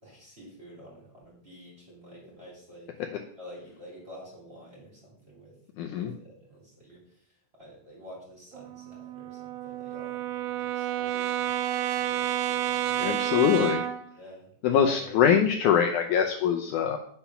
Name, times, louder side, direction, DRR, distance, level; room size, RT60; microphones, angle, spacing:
voice 1, 0.0-2.9 3.4-5.6 5.8-7.3 7.6-11.5 12.0-13.3 14.2-15.3, equal, 15° right, -4 dB, 2.9 m, -49 dB
voice 2, 5.8-6.1 13.0-13.8 14.6-17.0, left 8 dB, 85° left, 4 dB, 1.8 m, -23 dB
Brass instrument, 8.5-14.1, right 11 dB, 90° right, 2.5 m, -30 dB
9.0 x 5.7 x 5.6 m, 0.64 s
omnidirectional pair, 4.3 m